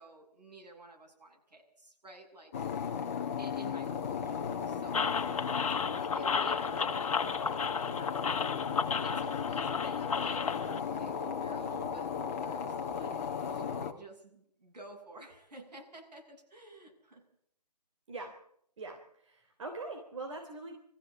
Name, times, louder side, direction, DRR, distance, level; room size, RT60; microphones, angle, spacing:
voice 1, 0.0-2.7 3.4-5.1 5.9-8.2 9.0-10.5 10.8-17.3, right 2 dB, 75° right, 1 dB, 7.5 m, -52 dB
sound 1, 2.5-13.9, left 7 dB, 20° left, 1.3 m, -35 dB
sound 2, 4.9-10.8, left 5 dB, 55° left, 1.4 m, -33 dB
voice 2, 18.8-20.8, right 3 dB, 50° right, 3 dB, 3.4 m, -42 dB
21.5 x 15.0 x 8.3 m, 0.69 s
hypercardioid pair, 170°, 21 cm